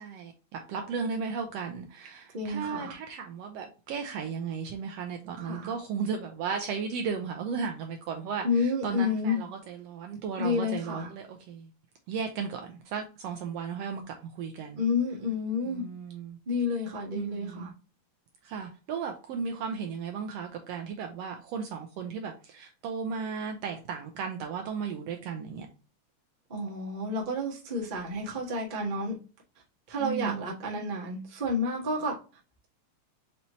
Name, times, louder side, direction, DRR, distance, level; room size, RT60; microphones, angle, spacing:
voice 1, 0.0-11.7 12.1-14.8 15.6-16.4 17.1-17.7 18.4-25.7 30.0-30.5, right 6 dB, 80° right, 1.5 m, -35 dB
voice 2, 2.3-3.0 5.4-5.7 8.4-9.4 10.4-11.1 14.8-15.8 16.5-17.7 26.5-29.1 29.9-32.2, left 3 dB, 35° right, 0.8 m, -30 dB
5.5 x 2.7 x 3.0 m
omnidirectional pair, 3.3 m